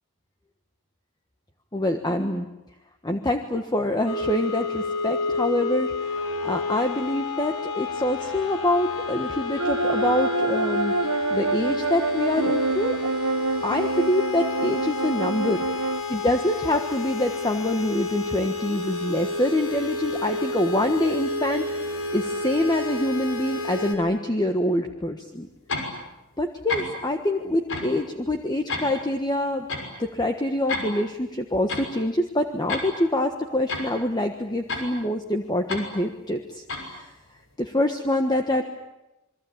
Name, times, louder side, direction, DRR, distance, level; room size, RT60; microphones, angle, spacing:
voice 1, 1.7-2.4 3.0-13.0 13.6-15.8 16.1-21.6 22.1-25.5 26.4-29.7 30.0-37.1 37.6-38.6, left 1 dB, 20° left, 5 dB, 1.4 m, -25 dB
sound 1, 4.1-24.0, left 3 dB, 85° left, 4.5 m, -30 dB
sound 2, 9.6-16.0, right 3 dB, 85° right, 1.0 m, -26 dB
sound 3, 25.7-25.9 26.7-26.9 27.7-27.9 28.7-28.9 29.7-29.8 30.7-30.9 31.7-31.9 32.7-32.9 33.7-33.9 34.7-34.9 35.7-35.9 36.7-36.8, left 3 dB, 60° left, 6.2 m, -29 dB
28.0 x 22.5 x 8.7 m, 0.96 s
head